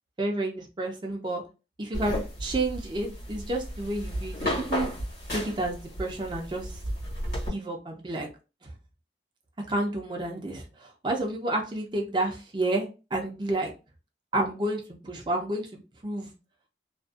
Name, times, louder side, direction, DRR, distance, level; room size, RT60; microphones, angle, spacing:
voice 1, 0.2-1.4 1.8-4.9 5.3-6.8 7.5-8.3 8.6-8.7 9.7-13.7 14.3-16.3, right 1 dB, 25° right, 1 dB, 0.5 m, -30 dB
sound 1, 1.9-7.5, equal, 55° left, 1.3 m, -33 dB
2.5 x 2.2 x 2.3 m, 0.31 s
head